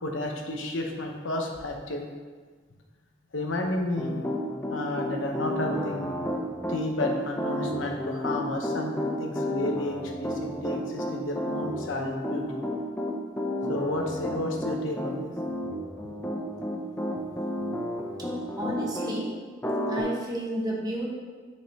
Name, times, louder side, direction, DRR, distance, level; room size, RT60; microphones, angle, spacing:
voice 1, 0.0-2.0 3.3-4.2 4.7-12.4 13.7-15.3, left 1 dB, 85° left, 2 dB, 1.0 m, -32 dB
Piano, 4.0-19.1 19.6-20.0, left 1 dB, 10° left, 0.6 m, -31 dB
voice 2, 18.6-19.4 19.8-21.1, right 1 dB, 20° right, -3 dB, 1.2 m, -31 dB
9.2 x 5.1 x 2.9 m, 1.5 s
head